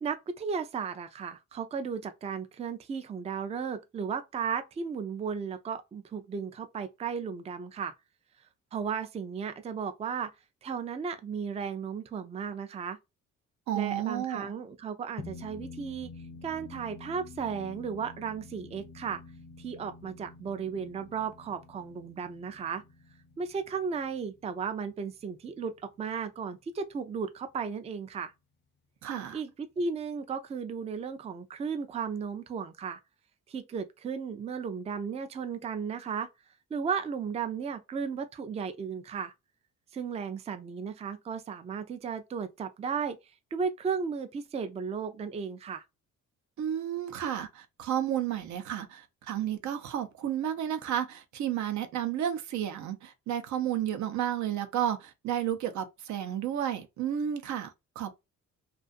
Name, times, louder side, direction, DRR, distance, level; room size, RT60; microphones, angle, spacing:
voice 1, 0.0-7.9 8.7-10.3 10.6-13.0 13.8-16.1 16.4-19.2 19.6-22.8 23.4-28.3 29.3-33.0 33.5-36.3 36.7-39.3 39.9-43.2 43.5-45.8, right 6 dB, 20° right, 0.4 m, -35 dB
voice 2, 13.7-14.5 29.0-29.4 46.6-58.1, right 10 dB, 70° right, 0.6 m, -32 dB
sound 1, 15.2-25.9, left 4 dB, 40° left, 0.5 m, -49 dB
2.4 x 2.4 x 2.4 m
cardioid pair, 90°, 30 cm